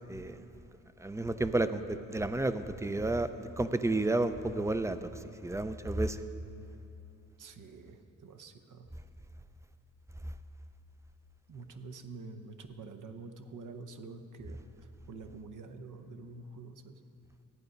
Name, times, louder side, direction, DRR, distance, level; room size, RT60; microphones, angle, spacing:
voice 1, 1.0-5.1 5.4-6.2, right 2 dB, 10° right, 11 dB, 0.4 m, -31 dB
voice 2, 7.4-8.9 11.5-17.0, right 3 dB, 70° right, 8 dB, 0.9 m, -47 dB
14.0 x 9.7 x 5.2 m, 2.9 s
wide cardioid pair, 115°, 32 cm